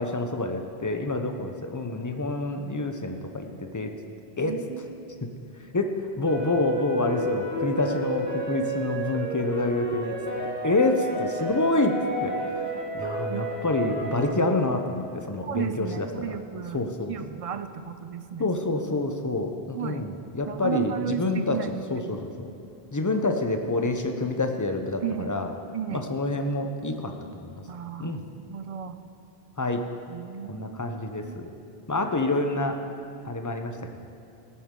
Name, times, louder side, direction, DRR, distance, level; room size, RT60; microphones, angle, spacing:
voice 1, 0.0-3.9 4.4-4.5 5.7-5.9 6.2-10.2 10.6-11.9 12.2-12.7 12.9-16.4 16.7-17.2 18.4-21.6 21.9-22.5 22.9-25.5 25.9-27.6 28.0-28.2 29.6-29.8 30.5-31.5 31.9-32.8 33.2-33.8, left 2 dB, 20° left, 5 dB, 0.6 m, -27 dB
voice 2, 4.4-5.2 13.3-13.5 15.4-18.5 19.7-20.1 20.5-21.7 22.0-22.1 25.0-25.4 25.7-26.1 27.7-29.0 30.1-30.8 31.2-31.4, right 8 dB, 60° right, 9 dB, 0.3 m, -34 dB
sound 1, 6.3-14.3, right 2 dB, 15° right, 2.2 m, -31 dB
17.0 x 8.6 x 3.8 m, 2.7 s
omnidirectional pair, 1.1 m